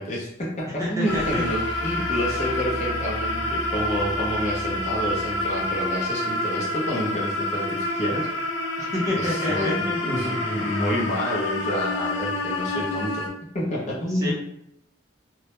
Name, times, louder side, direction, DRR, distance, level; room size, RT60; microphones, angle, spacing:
voice 1, 0.0-8.3 9.1-13.3 13.5-14.3, equal, 35° left, -4 dB, 0.6 m, -28 dB
voice 2, 0.8-1.4 8.8-10.0 14.1-14.3, left 1 dB, 15° right, -5 dB, 0.6 m, -27 dB
sound 1, 1.0-7.1, right 2 dB, 70° right, 0.5 m, -37 dB
sound 2, 1.1-13.3, left 2 dB, 85° left, 0.4 m, -28 dB
2.2 x 2.0 x 2.9 m, 0.74 s
head